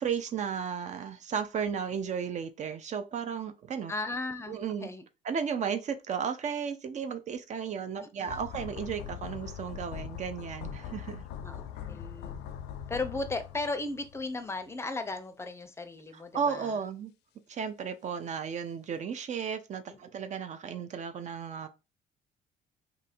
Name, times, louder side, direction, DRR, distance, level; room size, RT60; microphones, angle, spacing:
voice 1, 0.0-3.9 4.5-4.9 5.2-11.2 16.1-17.1 17.5-21.7, right 7 dB, 45° right, 0.6 m, -34 dB
voice 2, 3.9-5.0 8.0-8.4 11.4-12.4 12.9-16.7 19.9-20.0, left 3 dB, 15° left, 0.6 m, -36 dB
sound 1, 8.3-14.4 14.6-14.7, left 9 dB, 80° left, 0.5 m, -41 dB
2.7 x 2.5 x 4.2 m
cardioid pair, 110°, 17 cm